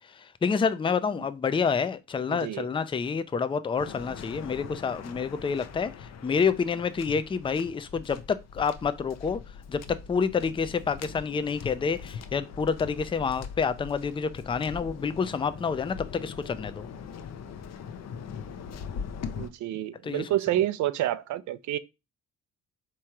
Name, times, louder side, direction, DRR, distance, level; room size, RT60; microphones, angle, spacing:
voice 1, 0.0-9.4 9.7-16.9 20.0-20.2, left 5 dB, 15° left, 0.4 m, -28 dB
voice 2, 2.3-2.7 19.4-21.8, right 13 dB, 70° right, 0.5 m, -28 dB
Waves surf, 3.8-19.5, left 6 dB, 60° left, 0.6 m, -41 dB
3.6 x 3.0 x 4.5 m
cardioid pair, 90°, 30 cm